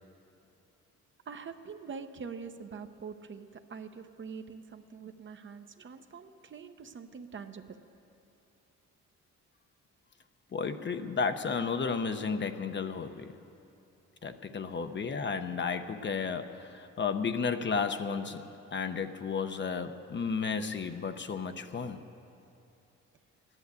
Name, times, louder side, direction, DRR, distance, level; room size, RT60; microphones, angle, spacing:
voice 1, 1.3-7.8, right 5 dB, 40° right, 8 dB, 0.8 m, -44 dB
voice 2, 10.5-13.4 14.2-22.0, left 5 dB, 40° left, 8 dB, 0.8 m, -33 dB
14.5 x 11.0 x 8.2 m, 2.8 s
cardioid pair, 90°, 30 cm